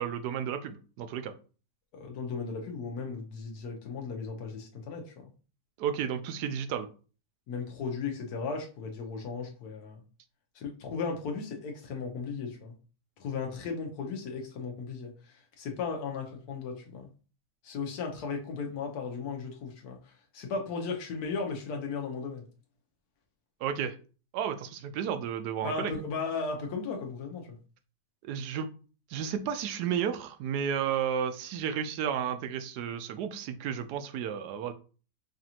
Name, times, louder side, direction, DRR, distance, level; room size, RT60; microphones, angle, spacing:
voice 1, 0.0-1.3 5.8-6.9 23.6-24.0 24.3-25.9 28.2-28.7 29.1-34.7, right 8 dB, 85° right, 1.1 m, -32 dB
voice 2, 1.9-5.3 7.5-10.0 10.5-12.7 13.2-17.1 17.6-22.4 25.6-27.6, left 5 dB, 75° left, 1.3 m, -36 dB
5.1 x 2.5 x 2.8 m
omnidirectional pair, 1.7 m